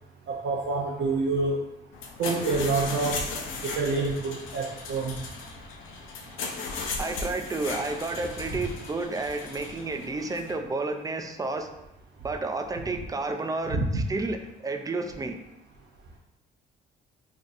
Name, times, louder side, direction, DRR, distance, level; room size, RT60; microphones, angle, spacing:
voice 1, 0.3-1.7 2.2-3.3 3.6-5.2 13.7-14.0, right 3 dB, 75° right, -2 dB, 0.5 m, -27 dB
sound 1, 1.9-10.5, left 4 dB, 90° left, 0.6 m, -36 dB
voice 2, 7.0-11.7 12.2-15.4, right 3 dB, 20° right, 6 dB, 0.3 m, -31 dB
2.5 x 2.4 x 3.9 m, 0.88 s
cardioid pair, 90°, 20 cm